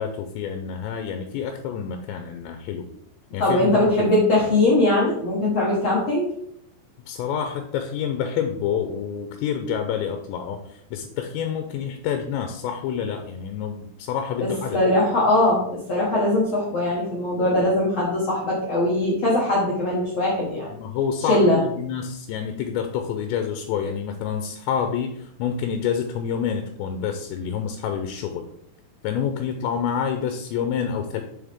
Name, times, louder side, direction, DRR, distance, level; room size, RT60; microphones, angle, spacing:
voice 1, 0.0-2.9 3.3-3.9 7.1-14.8 20.7-28.5 29.0-31.2, left 7 dB, 85° left, 6 dB, 2.9 m, -28 dB
voice 2, 3.4-6.3 14.4-20.7 21.2-21.6, left 1 dB, 60° left, -5 dB, 1.8 m, -21 dB
7.3 x 6.3 x 3.6 m, 0.72 s
omnidirectional pair, 5.0 m